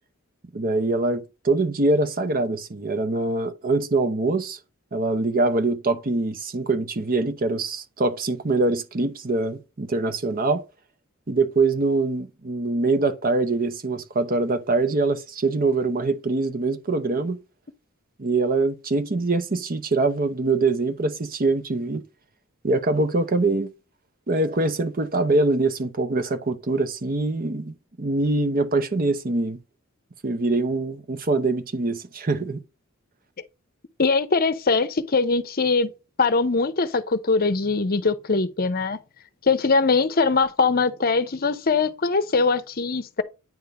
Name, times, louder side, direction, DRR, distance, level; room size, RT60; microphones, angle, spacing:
voice 1, 0.5-4.6 4.9-10.6 11.3-17.4 18.2-22.0 22.6-23.7 24.3-29.6 30.2-32.6, right 3 dB, 40° right, 0.8 m, -24 dB
voice 2, 34.0-35.9 36.2-39.0 39.4-43.2, left 4 dB, 45° left, 0.7 m, -22 dB
9.3 x 3.7 x 5.4 m
head